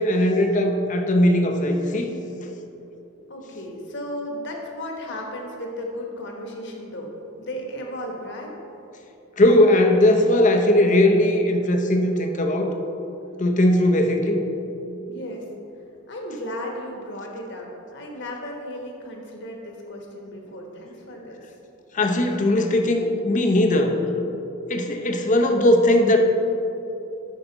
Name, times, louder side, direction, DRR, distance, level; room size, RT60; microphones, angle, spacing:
voice 1, 0.0-2.2 9.4-12.7 13.4-14.4 21.9-24.0 24.7-26.2, left 1 dB, 40° left, 4 dB, 0.7 m, -19 dB
voice 2, 3.3-8.6 15.1-15.5 16.1-21.5, left 1 dB, 60° left, 1 dB, 1.3 m, -35 dB
11.5 x 4.9 x 4.0 m, 3.0 s
head